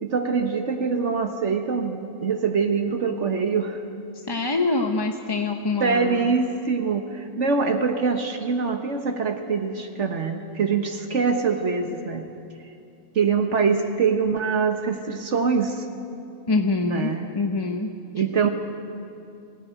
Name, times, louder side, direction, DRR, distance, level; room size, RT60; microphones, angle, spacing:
voice 1, 0.0-3.8 5.8-12.2 13.1-15.9 16.9-17.3 18.1-18.5, right 5 dB, 60° right, 5 dB, 1.5 m, -24 dB
voice 2, 4.1-6.3 16.5-18.5, left 3 dB, 25° left, 4 dB, 0.7 m, -26 dB
19.5 x 17.0 x 9.2 m, 2.6 s
omnidirectional pair, 1.4 m